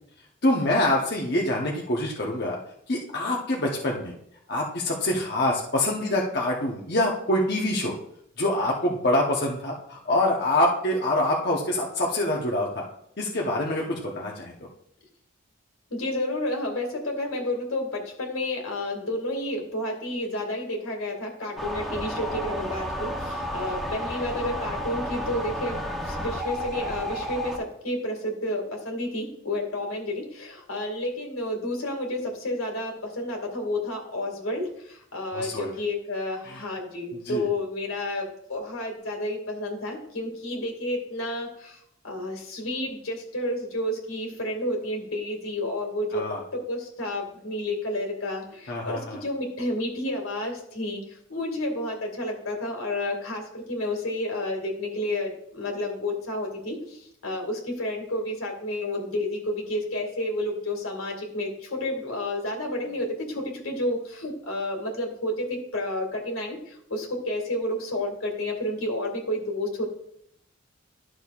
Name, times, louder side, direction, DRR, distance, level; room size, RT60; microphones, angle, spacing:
voice 1, 0.4-2.6 2.9-4.1 4.5-7.9 8.4-12.8 13.2-14.5 35.3-35.7 36.4-36.6 37.2-37.5 46.1-46.4 48.7-49.2, left 1 dB, 50° left, -2 dB, 1.0 m, -25 dB
voice 2, 15.9-41.8 42.0-46.2 46.7-51.0 51.3-69.8, left 1 dB, 85° left, 1 dB, 2.2 m, -30 dB
sound 1, 21.6-27.6, equal, ahead, 0.8 m, -32 dB
12.0 x 6.3 x 2.5 m, 0.72 s
head